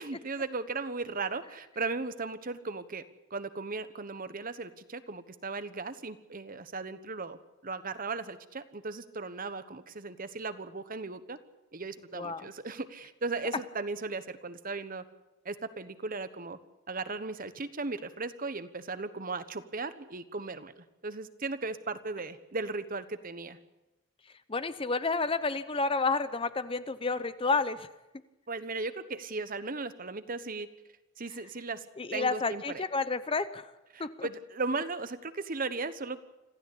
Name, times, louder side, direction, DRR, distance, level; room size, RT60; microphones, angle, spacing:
voice 1, 0.0-3.0 3.3-11.4 11.7-15.0 15.4-16.6 16.9-23.6 28.5-30.7 31.2-31.9 32.1-32.8 33.9-36.2, right 3 dB, 40° right, 12 dB, 1.1 m, -37 dB
voice 2, 12.1-12.5 24.5-27.9 32.0-33.7 34.0-34.3, left 4 dB, 25° left, 13 dB, 0.7 m, -30 dB
26.0 x 15.0 x 8.5 m, 1.0 s
head